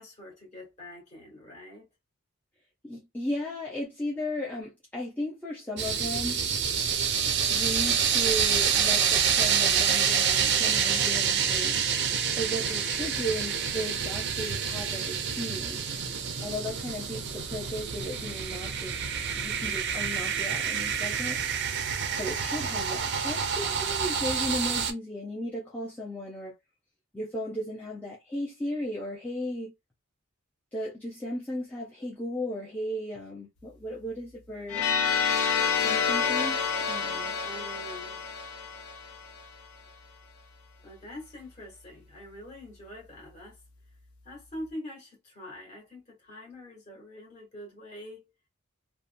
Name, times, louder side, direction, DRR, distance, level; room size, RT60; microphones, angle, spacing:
voice 1, 0.0-1.9 37.4-38.2 40.8-43.6 44.2-48.3, left 1 dB, 30° left, 1.3 m, -44 dB
voice 2, 2.8-6.4 7.5-11.8 12.4-15.8 16.4-19.0 19.4-21.4 22.2-26.5 27.1-29.7 30.7-34.8 35.8-36.6 36.9-37.4, equal, 5° left, 0.5 m, -35 dB
sound 1, 5.8-24.9, right 7 dB, 50° right, 0.4 m, -27 dB
sound 2, 34.7-39.5, left 6 dB, 80° left, 0.6 m, -28 dB
2.7 x 2.1 x 2.5 m
head